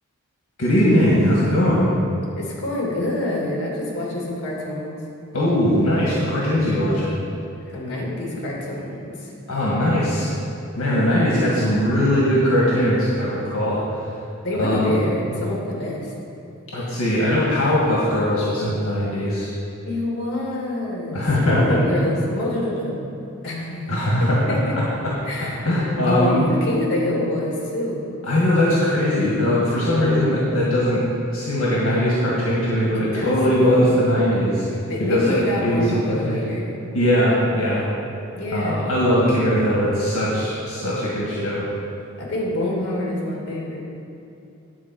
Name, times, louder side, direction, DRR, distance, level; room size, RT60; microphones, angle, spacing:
voice 1, 0.6-1.9 5.3-7.2 9.5-10.3 10.8-13.8 14.6-15.0 16.7-19.5 21.1-21.8 23.9-24.4 24.8-25.1 25.4-26.4 28.2-31.0 31.3-34.7 35.1-35.4 35.6-36.4 36.9-37.9 38.5-41.7, equal, 70° left, -6 dB, 1.9 m, -20 dB
voice 2, 2.3-5.0 7.7-9.3 14.4-16.1 19.9-23.0 23.4-24.8 25.2-28.1 33.1-34.0 34.9-36.8 38.3-39.1 42.2-43.8, left 1 dB, 50° left, -3 dB, 2.4 m, -26 dB
10.0 x 4.7 x 7.8 m, 2.8 s
head